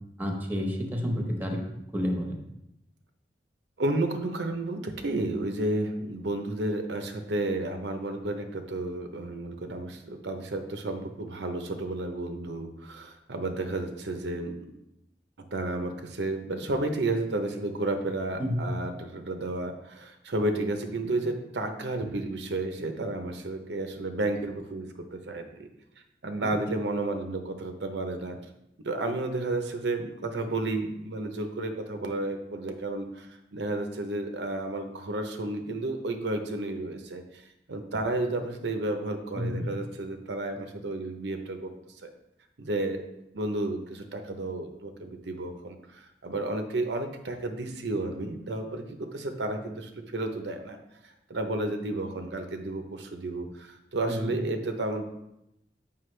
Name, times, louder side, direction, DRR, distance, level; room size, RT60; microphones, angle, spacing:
voice 1, 0.2-1.6 1.9-2.4 18.4-18.6 26.4-26.6 39.4-39.7 54.1-54.3, equal, 10° right, 2 dB, 1.1 m, -30 dB
voice 2, 3.8-14.5 15.5-25.7 26.2-28.4 28.8-41.7 42.0-42.1 42.6-43.0 43.3-50.8 51.0-55.0, right 2 dB, 75° right, 6 dB, 0.8 m, -32 dB
7.6 x 5.8 x 3.3 m, 0.85 s
head